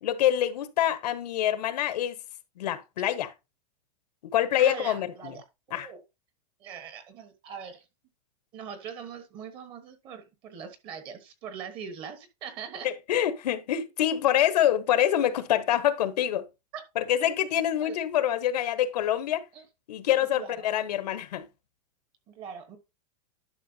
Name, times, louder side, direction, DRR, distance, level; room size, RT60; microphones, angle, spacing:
voice 1, 0.0-2.2 2.6-3.3 4.3-5.4 5.7-5.9 12.8-16.5 16.9-19.5 19.9-21.5, left 11 dB, 75° left, 1.2 m, -26 dB
voice 2, 4.6-6.0 6.6-7.8 8.5-12.9 16.7-16.8 17.2-17.3 17.8-18.0 19.5-19.6 20.3-20.7 22.3-22.8, right 7 dB, 25° right, 1.2 m, -41 dB
11.0 x 5.8 x 2.8 m
supercardioid pair, 175°, 21 cm